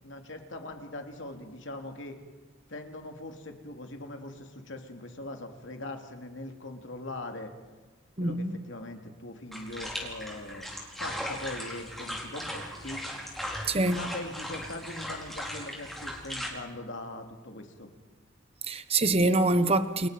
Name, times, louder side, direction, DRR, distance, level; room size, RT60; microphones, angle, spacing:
voice 1, 0.0-2.2 2.7-7.5 8.2-10.7 11.0-13.0 13.9-17.9, left 2 dB, 70° left, 2.9 m, -41 dB
voice 2, 8.2-8.6 13.7-14.0 18.7-20.1, right 2 dB, 30° right, 1.2 m, -25 dB
sound 1, 9.5-16.5, equal, ahead, 4.6 m, -38 dB
30.0 x 29.5 x 5.2 m
head